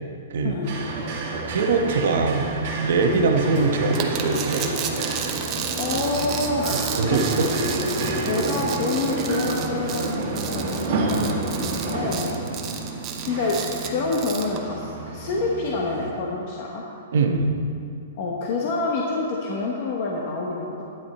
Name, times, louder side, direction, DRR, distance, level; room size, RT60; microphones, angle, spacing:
voice 1, 0.4-0.8 3.1-3.3 5.7-7.7 8.2-12.4 13.2-16.8 18.2-20.8, left 3 dB, 35° left, -2 dB, 1.0 m, -28 dB
sound 1, 0.6-16.1, right 2 dB, 35° right, 2.0 m, -29 dB
voice 2, 1.5-2.5 2.8-4.7 6.7-7.5 10.3-10.5 12.4-12.6 17.1-17.5, right 4 dB, 60° right, 4 dB, 1.1 m, -22 dB
sound 2, 3.9-14.6, right 8 dB, 20° right, 0.7 m, -33 dB
12.0 x 10.0 x 4.2 m, 2.4 s
hypercardioid pair, 175°, 0 cm